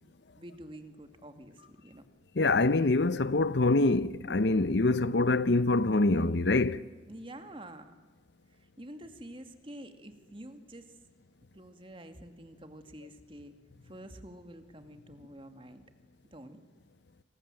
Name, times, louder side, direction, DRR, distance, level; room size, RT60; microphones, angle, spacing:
voice 1, 0.0-2.0 7.1-7.9 8.8-10.9 11.5-13.5 13.8-15.8 16.3-16.6, right 1 dB, 25° right, 2.1 m, -48 dB
voice 2, 2.4-6.8, left 2 dB, 60° left, 0.7 m, -25 dB
28.5 x 26.0 x 7.7 m
head